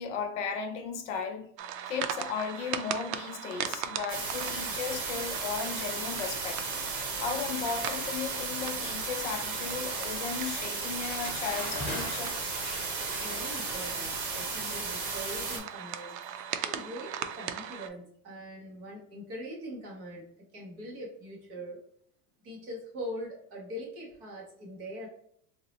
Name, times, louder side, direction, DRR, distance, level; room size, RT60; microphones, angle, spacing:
voice 1, 0.0-1.5 1.8-6.6 7.2-12.4, left 6 dB, 50° left, 0.5 m, -35 dB
sound 1, 1.6-17.9, right 9 dB, 85° right, 0.6 m, -39 dB
sound 2, 4.1-15.6, right 4 dB, 35° right, 0.8 m, -35 dB
Bathtub (filling or washing) / Splash splatter, 10.8-16.8, left 1 dB, 5° left, 0.8 m, -42 dB
voice 2, 13.2-16.1 16.6-21.8 22.4-25.1, equal, 20° right, 0.4 m, -42 dB
3.8 x 2.0 x 2.7 m
supercardioid pair, 170°, 48 cm